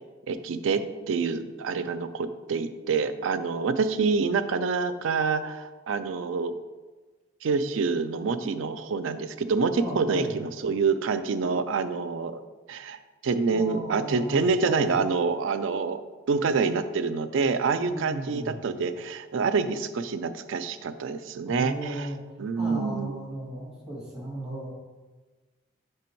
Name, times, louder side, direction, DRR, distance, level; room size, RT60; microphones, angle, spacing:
voice 1, 0.3-0.8 1.1-6.5 7.4-12.4 12.7-16.0 16.3-22.1 22.4-23.3, right 4 dB, 85° right, 10 dB, 0.4 m, -27 dB
voice 2, 9.8-10.4 13.5-14.9 17.8-18.6 21.5-22.2 22.6-24.7, right 1 dB, 5° right, -6 dB, 1.9 m, -36 dB
6.9 x 3.3 x 4.5 m, 1.3 s
head